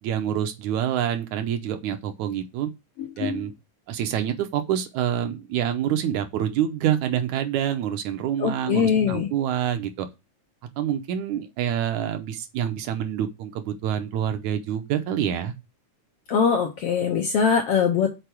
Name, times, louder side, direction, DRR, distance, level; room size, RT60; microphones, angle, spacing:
voice 1, 0.0-2.7 3.2-3.5 3.9-10.1 10.8-15.5, right 10 dB, 75° right, 2.1 m, -27 dB
voice 2, 3.0-3.4 8.4-9.3 16.3-18.1, left 6 dB, 70° left, 1.5 m, -22 dB
6.8 x 4.5 x 4.4 m
omnidirectional pair, 3.6 m